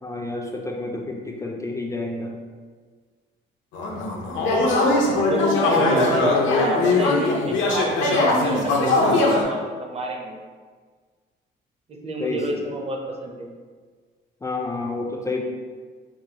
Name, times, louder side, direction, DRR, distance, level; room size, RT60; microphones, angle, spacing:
voice 1, 0.0-2.4 12.2-12.6 14.4-15.4, left 2 dB, 15° left, 0 dB, 0.4 m, -29 dB
sound 1, 3.7-9.4, left 2 dB, 75° left, 0.6 m, -20 dB
voice 2, 5.1-10.4 12.0-13.5, right 2 dB, 30° right, 1 dB, 0.6 m, -30 dB
4.5 x 2.0 x 2.8 m, 1.5 s
cardioid pair, 90°, 20 cm